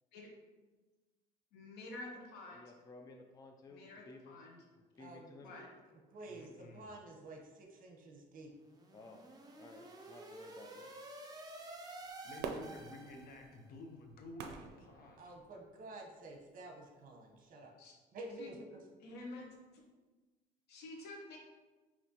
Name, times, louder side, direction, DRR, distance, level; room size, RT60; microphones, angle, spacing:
voice 1, 1.5-2.6 3.7-4.6 5.4-5.7 17.8-17.9 18.4-18.5 19.0-19.5 20.7-21.4, left 2 dB, 80° left, 0 dB, 1.0 m, -49 dB
voice 2, 2.5-4.5 4.8-5.5 8.9-9.2 9.6-10.9 15.0-15.1, left 2 dB, 20° left, 3 dB, 0.4 m, -56 dB
voice 3, 5.0-5.6 6.1-8.5 15.2-17.7 18.1-18.6, right 2 dB, 55° right, 1 dB, 0.9 m, -50 dB
voice 4, 6.2-6.9 12.2-15.3, left 2 dB, 60° left, 3 dB, 0.8 m, -53 dB
sound 1, 8.6-13.6, right 2 dB, 20° right, 0.6 m, -51 dB
Fireworks, 12.4-15.7 16.3-16.4, right 5 dB, 80° right, 0.5 m, -46 dB
5.9 x 3.0 x 2.9 m, 1.3 s
cardioid pair, 110°, 17 cm